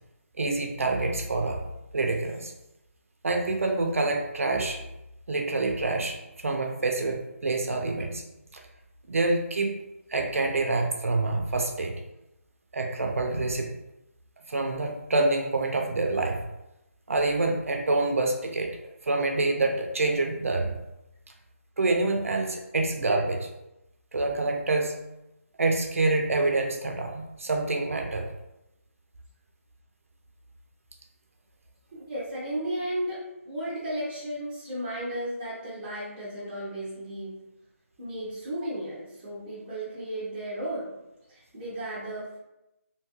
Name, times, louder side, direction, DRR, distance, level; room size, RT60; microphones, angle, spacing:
voice 1, 0.4-1.6 1.9-2.5 3.2-4.8 5.3-6.2 6.4-8.2 8.5-8.6 9.1-9.8 10.1-12.0 12.7-13.7 14.5-16.4 17.1-18.7 19.0-20.7 21.8-23.5 24.1-24.9 25.6-28.3, right 2 dB, 65° right, 3 dB, 0.5 m, -26 dB
voice 2, 31.9-33.2 33.4-37.3 38.0-41.0 41.3-42.4, right 1 dB, 10° right, -9 dB, 0.6 m, -34 dB
2.8 x 2.3 x 2.9 m, 0.91 s
figure-of-eight pair, 170°, 8 cm